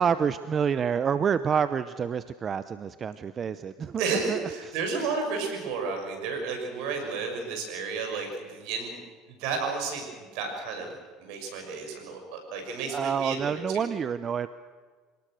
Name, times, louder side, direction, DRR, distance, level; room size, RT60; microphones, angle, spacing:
voice 1, 0.0-4.4 12.9-14.5, right 7 dB, 35° right, 13 dB, 0.8 m, -28 dB
voice 2, 4.0-9.0 9.3-10.9 11.2-13.9, right 4 dB, 70° right, 4 dB, 6.6 m, -32 dB
25.5 x 19.0 x 6.5 m, 1.5 s
supercardioid pair, 90°, 0 cm